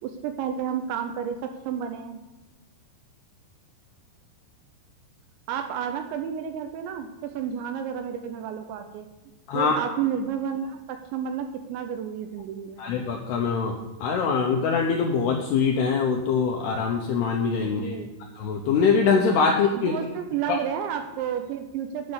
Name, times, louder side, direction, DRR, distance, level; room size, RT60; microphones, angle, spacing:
voice 1, 0.0-2.2 5.5-9.1 9.5-12.8 17.6-18.1 19.5-22.1, right 8 dB, 80° right, 6 dB, 2.8 m, -31 dB
voice 2, 12.8-18.0 18.4-19.9 20.5-20.6, left 5 dB, 80° left, 1 dB, 2.4 m, -23 dB
10.5 x 5.4 x 7.9 m, 1.1 s
omnidirectional pair, 5.7 m